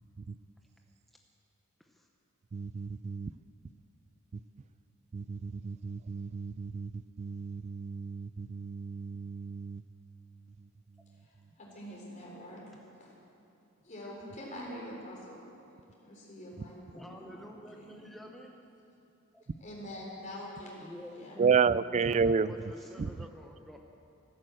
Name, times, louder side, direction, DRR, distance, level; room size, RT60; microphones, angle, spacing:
voice 1, 2.5-3.3 5.1-9.8 21.4-22.7 23.0-23.1, right 5 dB, 35° right, 17 dB, 0.3 m, -31 dB
voice 2, 11.2-13.1 13.8-15.4 16.0-18.2 19.6-21.4, left 1 dB, 35° left, -3 dB, 3.9 m, -45 dB
voice 3, 16.9-18.6 19.3-19.4 20.8-23.8, equal, ahead, 1 dB, 0.8 m, -49 dB
14.0 x 12.0 x 7.7 m, 2.7 s
head